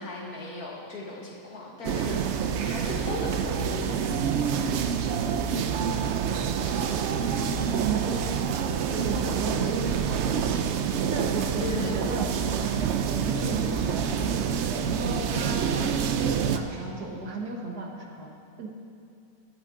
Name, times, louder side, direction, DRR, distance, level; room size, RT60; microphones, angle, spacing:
voice 1, 0.0-2.2 2.6-3.9 11.6-12.1, left 2 dB, 70° left, -2 dB, 2.2 m, -36 dB
sound 1, 1.8-16.6, right 7 dB, 65° right, 0.7 m, -27 dB
voice 2, 6.7-8.2 8.5-10.7 11.0-14.1 14.9-18.3 18.6-18.7, right 2 dB, 85° right, 1 dB, 1.9 m, -36 dB
14.0 x 12.0 x 3.8 m, 2.4 s
omnidirectional pair, 1.6 m